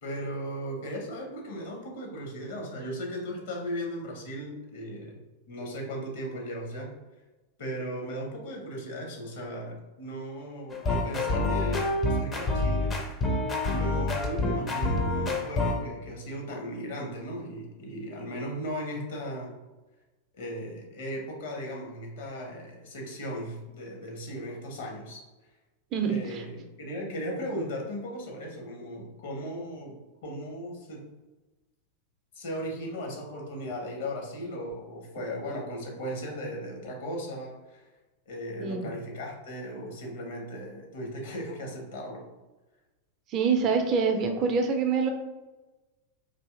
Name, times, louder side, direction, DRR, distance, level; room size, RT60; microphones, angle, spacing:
voice 1, 0.0-5.2 5.5-6.9 7.6-12.9 13.7-19.5 20.3-25.2 26.0-31.0 32.3-37.9 38.3-42.2, equal, 55° left, 0 dB, 0.9 m, -37 dB
sound 1, 10.7-15.8, left 2 dB, 20° left, 0.5 m, -27 dB
voice 2, 25.9-26.4 38.6-38.8 43.3-45.1, right 5 dB, 35° right, 5 dB, 0.4 m, -25 dB
3.8 x 2.7 x 2.4 m, 1.2 s
figure-of-eight pair, 90°, 0 cm